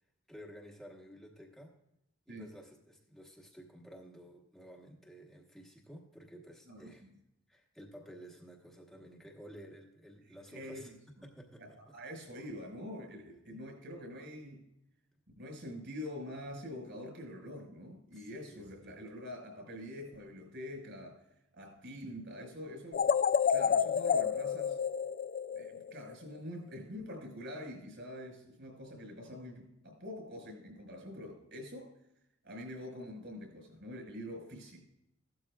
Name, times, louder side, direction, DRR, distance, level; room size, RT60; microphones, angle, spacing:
voice 1, 0.3-1.8 2.3-7.1 7.5-10.9 11.2-12.2 18.1-19.0, equal, ahead, -2 dB, 1.3 m, -53 dB
voice 2, 6.7-7.1 10.5-11.0 11.6-14.6 15.4-21.2 21.5-23.0 23.5-24.8 25.6-31.9 32.4-34.9, left 1 dB, 60° right, 3 dB, 5.2 m, -45 dB
sound 1, 22.9-26.1, left 7 dB, 45° left, 0.3 m, -29 dB
15.5 x 12.5 x 2.4 m, 0.82 s
head